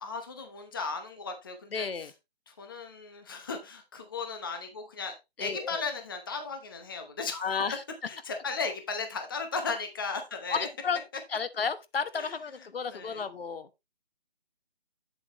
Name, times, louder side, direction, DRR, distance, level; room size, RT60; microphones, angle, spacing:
voice 1, 0.0-2.1 2.5-7.6 8.1-10.7 12.1-13.2, left 4 dB, 20° left, 0.8 m, -36 dB
voice 2, 1.7-2.1 5.4-5.8 7.4-7.8 10.5-11.0 11.3-13.7, left 5 dB, 70° left, 1.1 m, -32 dB
8.7 x 7.6 x 2.9 m
hypercardioid pair, 175°, 31 cm